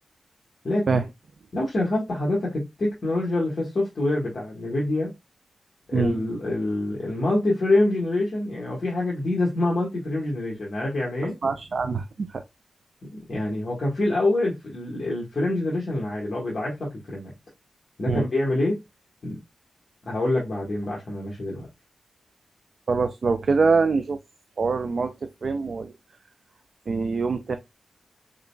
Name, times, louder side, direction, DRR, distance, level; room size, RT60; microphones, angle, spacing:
voice 1, 1.5-5.1 5.9-11.4 13.0-17.3 18.0-18.8 19.2-19.4 20.0-21.7, left 2 dB, 50° left, 1.3 m, -26 dB
voice 2, 11.4-12.3 18.1-18.2 22.9-24.2 24.6-25.1 25.4-25.9 26.9-27.6, right 4 dB, 60° right, 0.4 m, -23 dB
4.0 x 3.8 x 2.2 m
wide cardioid pair, 105°, 0 cm